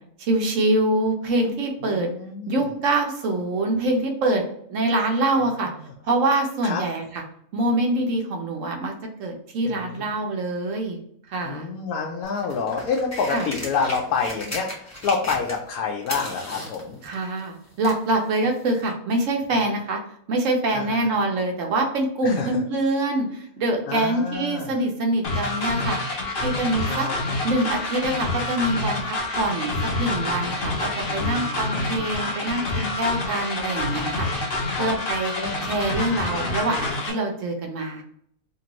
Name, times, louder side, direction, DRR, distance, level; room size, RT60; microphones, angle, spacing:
voice 1, 0.2-2.1 2.5-4.4 4.7-5.7 6.1-7.2 7.5-8.9 9.2-11.0 11.3-11.7 13.3-13.5 17.0-20.0 20.3-26.0 26.4-27.1 27.4-29.7 30.0-34.3 34.8-35.3 35.7-38.0, right 2 dB, 65° right, 3 dB, 1.0 m, -25 dB
voice 2, 1.8-2.7 5.7-5.9 6.6-6.8 9.6-10.1 11.4-17.0 20.7-21.1 22.2-22.6 23.9-24.8 26.8-27.1 31.1-32.2 34.7-34.9 35.3-35.7, left 5 dB, 85° left, 0 dB, 1.1 m, -28 dB
sound 1, 12.2-15.8 16.0-18.1 18.9-19.0, equal, 15° left, 0.6 m, -36 dB
sound 2, 25.2-37.1, left 2 dB, 55° left, 0.7 m, -27 dB
3.0 x 2.5 x 2.9 m, 0.69 s
omnidirectional pair, 1.5 m